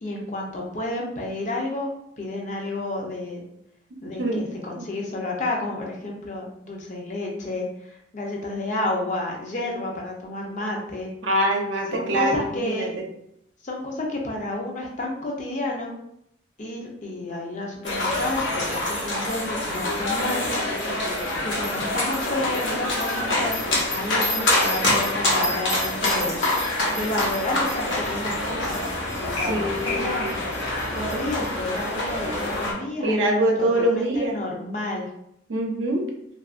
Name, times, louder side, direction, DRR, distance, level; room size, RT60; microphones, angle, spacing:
voice 1, 0.0-1.9 2.2-3.4 4.0-11.1 11.9-12.9 13.6-15.9 16.6-21.0 21.4-23.6 23.9-26.4 26.9-30.3 30.9-35.1, left 2 dB, 40° left, -1 dB, 0.5 m, -31 dB
voice 2, 11.2-12.9 29.5-30.3 33.0-34.4 35.5-36.1, right 1 dB, 80° right, 1 dB, 0.6 m, -24 dB
sound 1, 17.8-32.7, left 1 dB, 80° left, 0.9 m, -26 dB
2.8 x 2.4 x 2.4 m, 0.76 s
head